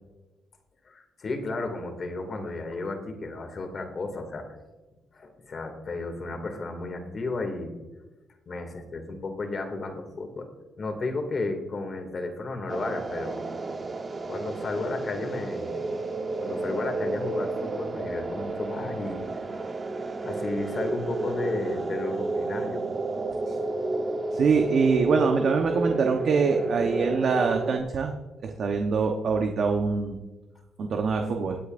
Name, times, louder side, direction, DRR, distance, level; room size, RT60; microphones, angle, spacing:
voice 1, 0.9-4.4 5.1-7.7 8.5-10.5 10.8-13.4 14.3-15.8 16.4-19.6 20.0-22.8, left 3 dB, 45° left, 4 dB, 2.4 m, -33 dB
sound 1, 12.7-27.8, right 2 dB, 35° right, 1.1 m, -31 dB
voice 2, 24.3-28.1 28.4-30.2 30.8-31.6, right 5 dB, 60° right, 3 dB, 1.1 m, -24 dB
22.5 x 8.5 x 2.6 m, 1.1 s
cardioid pair, 90°, 0 cm